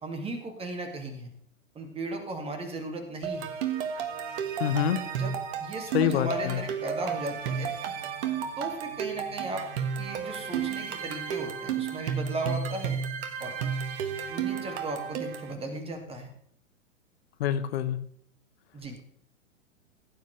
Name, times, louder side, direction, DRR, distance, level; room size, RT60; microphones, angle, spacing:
voice 1, 0.0-1.3 1.7-3.5 5.1-7.7 8.6-9.7 10.0-13.0 13.4-13.5 14.3-16.3 18.7-18.9, right 2 dB, 15° right, 4 dB, 2.3 m, -36 dB
sound 1, 3.2-15.5, right 8 dB, 40° right, 1.6 m, -32 dB
sound 2, 3.5-16.3, left 1 dB, 25° left, 5.6 m, -53 dB
voice 2, 4.6-5.0 5.9-6.6 17.4-18.0, left 10 dB, 50° left, 11 dB, 1.2 m, -26 dB
17.5 x 9.4 x 3.3 m, 0.67 s
figure-of-eight pair, 115°, 41 cm